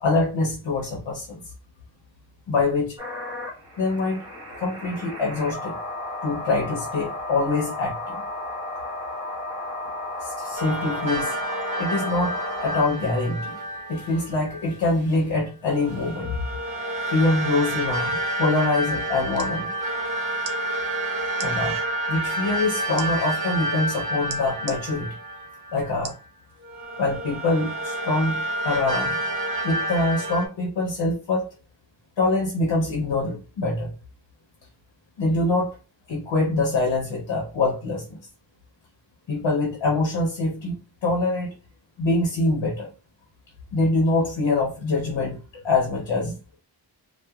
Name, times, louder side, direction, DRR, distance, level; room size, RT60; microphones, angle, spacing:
voice 1, 0.0-1.4 2.5-3.0 3.8-4.2 4.6-5.7 6.2-8.1 10.2-11.4 11.8-13.6 13.9-16.5 17.1-19.7 21.4-21.8 22.1-25.2 25.7-26.1 27.0-29.2 29.6-31.5 32.2-33.9 35.2-35.8 36.1-38.2 39.3-40.8 41.0-41.6 42.0-42.9 43.7-46.6, left 2 dB, 75° left, -1 dB, 0.8 m, -24 dB
sound 1, 3.0-13.0, left 2 dB, 10° right, 1.2 m, -34 dB
sound 2, 10.6-14.7 15.7-26.1 26.6-30.5, right 1 dB, 50° right, 0.9 m, -29 dB
sound 3, 19.3-19.5 20.4-20.6 21.3-21.5 23.0-23.1 24.3-24.8 26.0-26.3 26.8-26.9, right 6 dB, 85° right, 0.6 m, -36 dB
2.8 x 2.1 x 2.3 m, 0.35 s
wide cardioid pair, 85°, 44 cm